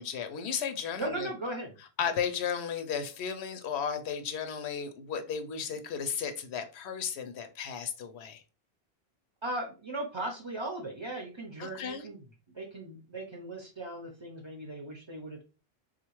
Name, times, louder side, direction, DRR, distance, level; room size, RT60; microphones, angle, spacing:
voice 1, 0.0-1.3 2.0-8.4 11.6-12.0, left 7 dB, 90° left, 0.9 m, -34 dB
voice 2, 1.0-1.7 9.4-12.2 12.5-15.4, right 1 dB, 35° right, 0.5 m, -38 dB
3.7 x 2.5 x 2.9 m
omnidirectional pair, 1.1 m